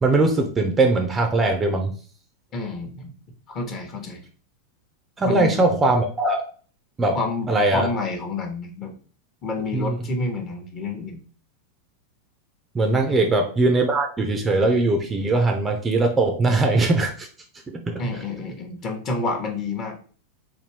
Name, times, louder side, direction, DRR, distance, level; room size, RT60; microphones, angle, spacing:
voice 1, 0.0-1.9 5.2-6.4 7.0-7.2 7.5-7.9 9.7-10.0 12.7-17.3 17.7-18.0, right 2 dB, 15° right, 4 dB, 0.5 m, -20 dB
voice 2, 2.5-3.1 3.5-4.2 5.2-5.7 7.1-8.9 9.4-11.2 13.1-13.3 18.0-20.0, left 3 dB, 30° left, 4 dB, 0.9 m, -29 dB
4.1 x 2.6 x 3.3 m, 0.41 s
figure-of-eight pair, 90°, 0 cm